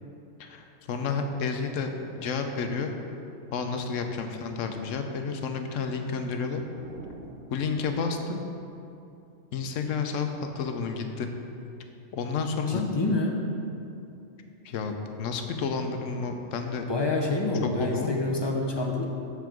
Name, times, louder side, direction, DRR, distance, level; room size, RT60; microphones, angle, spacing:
voice 1, 0.4-1.9 2.2-2.9 3.5-6.6 7.5-8.4 9.5-11.3 12.1-12.9 14.6-16.8 17.8-18.2, left 5 dB, 75° left, 5 dB, 1.0 m, -30 dB
sound 1, 5.9-8.5, right 3 dB, 75° right, 1.1 m, -49 dB
voice 2, 12.7-13.5 16.9-19.1, left 2 dB, 30° left, 0 dB, 0.5 m, -27 dB
7.0 x 4.6 x 6.0 m, 2.7 s
omnidirectional pair, 1.3 m